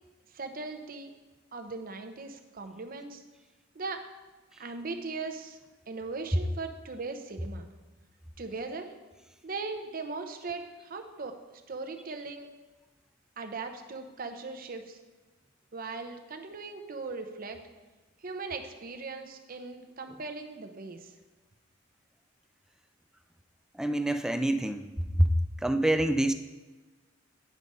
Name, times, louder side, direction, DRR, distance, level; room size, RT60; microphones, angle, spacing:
voice 1, 0.3-1.1 1.5-3.2 3.7-4.0 4.6-5.6 5.9-7.6 8.4-8.9 9.4-11.4 11.7-12.5 13.4-15.0 15.7-17.6 18.2-21.1, right 3 dB, 45° right, 6 dB, 0.7 m, -39 dB
voice 2, 23.7-24.9 25.2-25.3 25.6-26.3, right 1 dB, 5° right, 9 dB, 0.3 m, -26 dB
9.4 x 4.9 x 5.4 m, 1.2 s
head